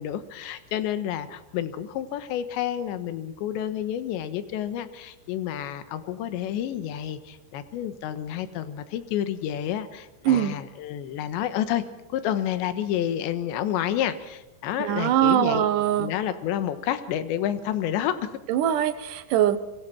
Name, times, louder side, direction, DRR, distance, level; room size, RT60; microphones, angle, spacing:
voice 1, 0.0-11.8 12.1-15.7 16.0-18.4, left 10 dB, 80° left, 11 dB, 3.5 m, -29 dB
voice 2, 10.3-10.6 14.8-16.1 18.5-19.6, right 11 dB, 75° right, 11 dB, 1.9 m, -22 dB
25.5 x 24.5 x 6.1 m, 0.95 s
omnidirectional pair, 5.2 m